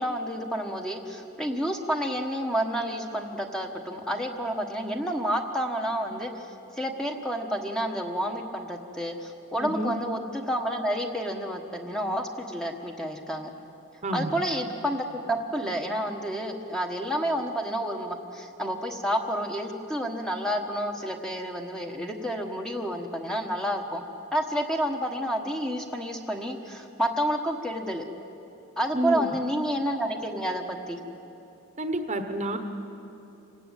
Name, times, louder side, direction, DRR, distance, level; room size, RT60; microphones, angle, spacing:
voice 1, 0.0-6.5 6.8-13.5 14.1-24.0 24.3-28.0 28.8-31.0, equal, 5° left, 2 dB, 1.3 m, -30 dB
voice 2, 9.5-9.9 14.0-14.4 28.9-29.2 31.8-32.6, right 1 dB, 30° right, 6 dB, 1.2 m, -29 dB
27.0 x 17.0 x 9.2 m, 3.0 s
head